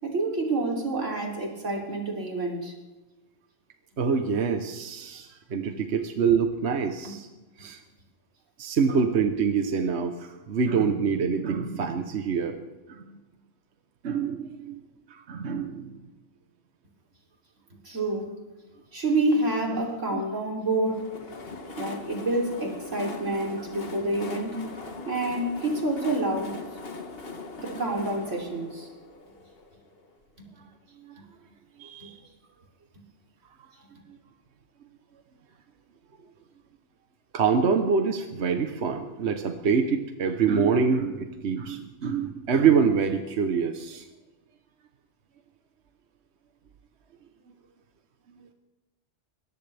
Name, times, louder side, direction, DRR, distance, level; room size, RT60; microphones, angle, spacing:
voice 1, 0.0-2.7 7.0-7.1 8.9-9.0 17.8-18.3 18.9-21.1 21.8-24.6 25.1-26.6 27.6-28.9 30.4-30.5 32.0-32.1, right 2 dB, 90° right, 0 dB, 3.6 m, -28 dB
voice 2, 4.0-7.3 7.6-7.8 8.6-12.6 12.9-13.2 14.0-14.8 15.1-16.0 20.1-20.2 31.0-31.1 31.8-32.2 37.3-44.1, right 6 dB, 65° right, 6 dB, 1.2 m, -25 dB
Train, 20.7-30.3, left 3 dB, 55° left, 1.6 m, -40 dB
22.0 x 18.0 x 3.4 m, 1.2 s
omnidirectional pair, 1.2 m